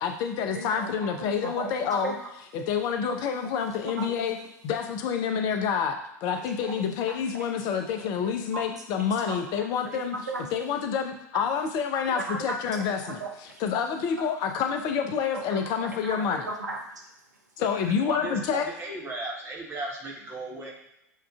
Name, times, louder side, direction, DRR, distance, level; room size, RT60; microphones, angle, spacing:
voice 1, 0.0-2.1 2.5-4.4 4.6-10.1 10.5-13.2 13.6-16.5 17.6-18.7, left 7 dB, 45° left, 5 dB, 0.5 m, -28 dB
voice 2, 0.5-2.2 3.4-3.5 3.8-4.3 6.6-7.7 8.2-9.4 9.8-10.5 11.3-11.4 12.1-13.6 15.3-17.0, right 2 dB, 85° right, 1 dB, 0.5 m, -37 dB
voice 3, 17.7-20.7, right 2 dB, 30° right, -1 dB, 1.1 m, -36 dB
6.3 x 2.4 x 2.3 m, 0.83 s
figure-of-eight pair, 80°, 9 cm